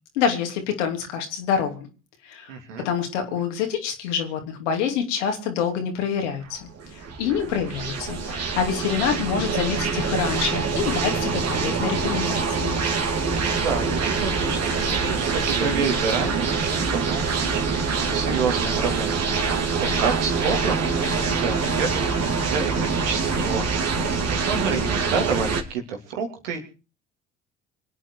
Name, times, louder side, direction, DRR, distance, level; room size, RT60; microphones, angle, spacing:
voice 1, 0.1-1.9 2.2-2.5 2.8-12.7, left 7 dB, 75° left, 4 dB, 3.0 m, -26 dB
voice 2, 2.5-2.9 13.3-26.6, right 6 dB, 75° right, 3 dB, 3.1 m, -29 dB
sound 1, 6.5-25.6, right 4 dB, 45° right, 2.8 m, -25 dB
25.0 x 9.0 x 4.8 m, 0.35 s
figure-of-eight pair, 55°, 36 cm